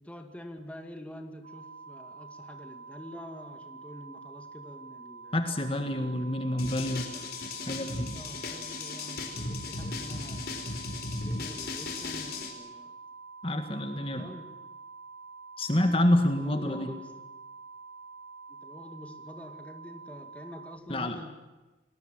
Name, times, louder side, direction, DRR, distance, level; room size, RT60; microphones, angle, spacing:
voice 1, 0.0-5.4 5.9-6.4 8.1-10.6 11.2-13.0 13.7-14.5 16.4-17.1 18.5-21.4, equal, 5° left, 4 dB, 2.3 m, -46 dB
sound 1, 1.4-20.8, right 4 dB, 60° right, 3.0 m, -47 dB
voice 2, 5.3-7.1 7.7-8.1 13.4-14.3 15.6-16.9 20.9-21.2, left 1 dB, 30° left, 6 dB, 1.9 m, -27 dB
sound 2, 6.6-12.5, left 3 dB, 55° left, 4.6 m, -36 dB
30.0 x 20.0 x 7.7 m, 1.1 s
head